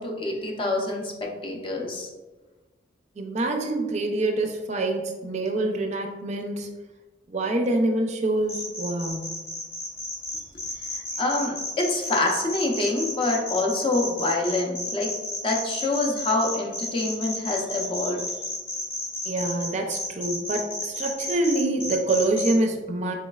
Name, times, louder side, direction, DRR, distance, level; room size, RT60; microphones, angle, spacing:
voice 1, 0.0-2.1 10.9-15.1 15.4-18.2, left 2 dB, 30° left, 0 dB, 0.5 m, -26 dB
voice 2, 3.2-6.7 7.3-9.3 19.2-23.1, right 2 dB, 40° right, 3 dB, 0.4 m, -26 dB
sound 1, 8.5-22.5, left 2 dB, 80° left, 1.3 m, -32 dB
3.9 x 3.1 x 2.3 m, 1.2 s
head